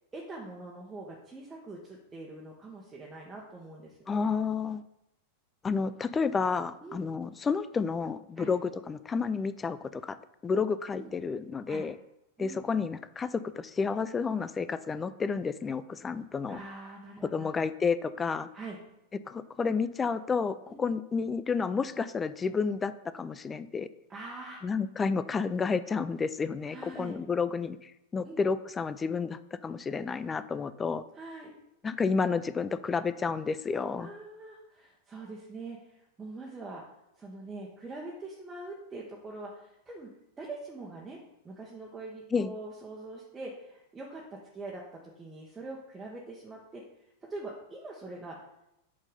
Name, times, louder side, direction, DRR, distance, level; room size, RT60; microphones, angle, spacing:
voice 1, 0.1-4.2 6.8-7.0 8.4-8.5 10.9-11.1 11.7-11.8 12.4-12.6 16.5-17.5 18.5-18.8 20.7-20.8 24.1-24.6 26.7-27.2 28.2-28.4 31.1-31.5 34.0-36.8 37.2-40.1 40.4-41.2 41.4-46.8 47.3-48.4, right 2 dB, 15° right, -3 dB, 1.3 m, -43 dB
voice 2, 4.1-4.8 5.6-10.2 10.4-12.0 12.4-16.6 17.3-18.5 19.3-23.9 24.6-31.0 31.8-34.1 42.3-42.5, left 5 dB, 20° left, 14 dB, 0.4 m, -30 dB
8.6 x 4.5 x 5.3 m, 0.86 s
figure-of-eight pair, 90°, 0 cm